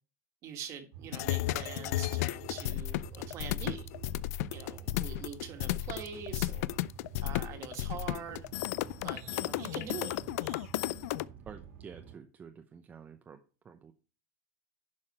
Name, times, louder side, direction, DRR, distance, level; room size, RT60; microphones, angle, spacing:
voice 1, 0.4-3.9 4.5-6.7 7.2-8.5 9.0-10.1, right 8 dB, 35° right, 1.7 m, -44 dB
sound 1, 0.9-12.2, right 8 dB, 75° right, 2.5 m, -49 dB
sound 2, 1.1-11.3, left 17 dB, 75° left, 0.4 m, -34 dB
voice 2, 11.5-13.4 13.6-13.9, right 6 dB, 20° right, 0.6 m, -49 dB
11.0 x 5.9 x 4.3 m
supercardioid pair, 160°, 8 cm